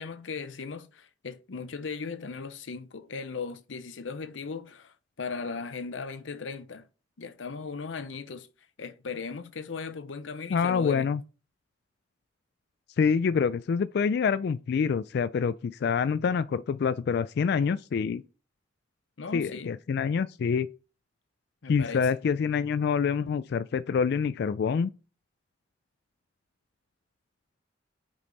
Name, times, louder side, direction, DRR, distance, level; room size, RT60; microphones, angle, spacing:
voice 1, 0.0-6.9 7.2-8.5 8.8-11.1 19.2-19.7 21.6-22.1, left 5 dB, 85° left, 0.7 m, -37 dB
voice 2, 10.5-11.2 13.0-18.2 19.3-20.7 21.7-24.9, left 6 dB, 60° left, 0.3 m, -26 dB
8.3 x 5.2 x 4.0 m
head